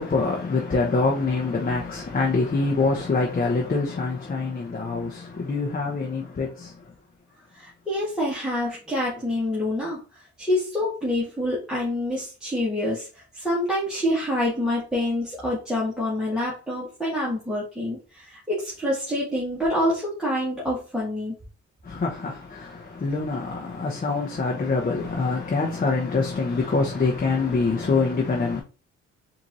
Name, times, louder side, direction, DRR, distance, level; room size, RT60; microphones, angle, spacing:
voice 1, 0.0-6.8 21.8-28.6, left 3 dB, 30° left, 1.0 m, -25 dB
voice 2, 7.6-10.0 10.4-13.1 13.3-21.3, left 1 dB, ahead, 1.8 m, -26 dB
4.4 x 2.9 x 4.1 m
cardioid pair, 90°, 30 cm